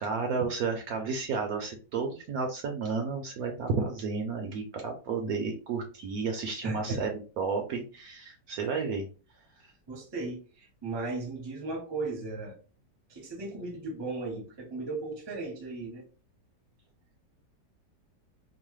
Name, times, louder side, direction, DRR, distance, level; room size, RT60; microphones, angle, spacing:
voice 1, 0.0-9.1, right 4 dB, 70° right, 0.9 m, -32 dB
voice 2, 6.6-7.0 9.9-12.6 13.1-16.0, right 3 dB, 25° right, 0.6 m, -36 dB
3.0 x 2.1 x 3.0 m
omnidirectional pair, 1.9 m